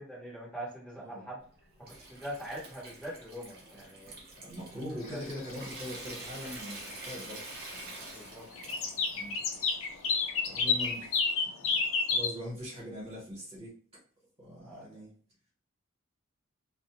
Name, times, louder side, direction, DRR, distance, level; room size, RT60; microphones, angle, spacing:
voice 1, 0.0-1.4 2.0-4.1 5.1-5.2 8.1-8.4 8.7-8.8 14.6-15.0, right 1 dB, 5° left, -7 dB, 1.0 m, -43 dB
voice 2, 1.0-1.3 3.6-3.8 4.4-7.5 9.1-9.4 10.5-11.1 11.6-11.8 12.1-13.7 14.4-15.1, equal, 30° right, -6 dB, 1.3 m, -42 dB
Water tap faucet / Sink (filling or washing) / Trickle dribble, 1.4-11.3, right 2 dB, 50° right, 0.8 m, -47 dB
sound 1, 5.0-6.2 6.5-6.8 7.1-7.9 8.3-12.3, left 4 dB, 70° left, 0.5 m, -30 dB
2.5 x 2.1 x 2.9 m, 0.43 s
head